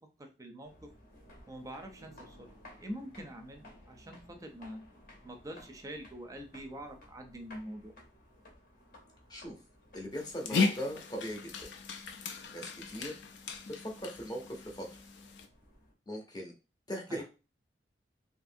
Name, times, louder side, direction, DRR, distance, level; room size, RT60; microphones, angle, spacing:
voice 1, 0.2-0.9 1.5-2.5 2.8-4.8 5.2-7.9 17.1-17.2, equal, 20° right, 5 dB, 0.5 m, -45 dB
sound 1, 0.6-15.9, left 1 dB, 55° left, 0.8 m, -58 dB
voice 2, 9.9-11.7 12.5-13.2 13.8-14.9 16.1-16.5 16.9-17.2, equal, 25° left, 1 dB, 0.7 m, -39 dB
Dog, 10.1-15.5, left 4 dB, 75° left, 0.4 m, -36 dB
2.8 x 2.6 x 2.6 m, 0.31 s
head